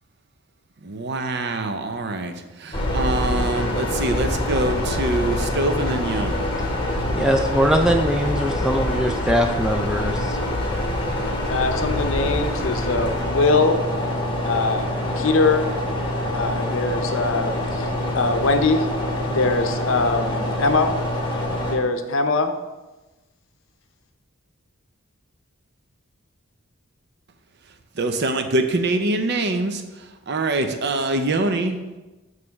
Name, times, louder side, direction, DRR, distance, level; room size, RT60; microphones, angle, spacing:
voice 1, 0.8-2.3 2.6-6.5 28.0-29.8 30.3-31.8, right 2 dB, 50° right, 7 dB, 0.6 m, -24 dB
sound 1, 2.7-21.8, left 1 dB, 20° left, 1.0 m, -25 dB
voice 2, 7.2-10.4, equal, 5° right, 3 dB, 0.3 m, -21 dB
voice 3, 11.5-13.8 14.5-15.7 16.3-17.5 17.8-17.9 18.1-18.9 19.3-20.9 21.6-22.5, left 3 dB, 65° left, 7 dB, 0.7 m, -22 dB
7.4 x 3.2 x 5.8 m, 1.1 s
head